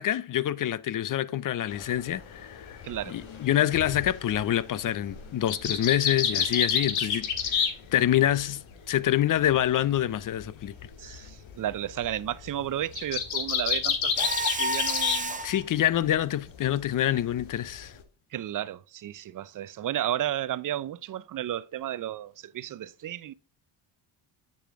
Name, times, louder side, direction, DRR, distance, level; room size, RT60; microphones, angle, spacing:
voice 1, 0.0-2.8 3.1-7.6 7.9-10.7 15.4-17.9, left 12 dB, 45° left, 0.5 m, -26 dB
sound 1, 1.7-8.4 8.7-15.2 15.5-16.2 16.6-18.0, left 7 dB, 70° left, 1.8 m, -30 dB
voice 2, 2.8-3.2 11.0-15.4 18.3-23.3, right 12 dB, 45° right, 0.5 m, -33 dB
Mechanisms, 14.2-15.6, right 1 dB, 15° right, 0.8 m, -30 dB
7.8 x 6.8 x 3.6 m
cardioid pair, 110°, 49 cm